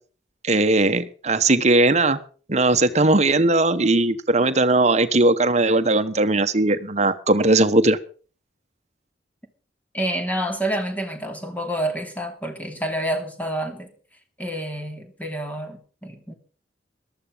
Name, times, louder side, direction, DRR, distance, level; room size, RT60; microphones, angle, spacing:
voice 1, 0.4-2.2 2.5-8.0, right 2 dB, 40° right, 1.3 m, -19 dB
voice 2, 9.9-13.9 14.4-16.3, right 1 dB, 10° left, 2.9 m, -28 dB
14.5 x 12.5 x 5.2 m
head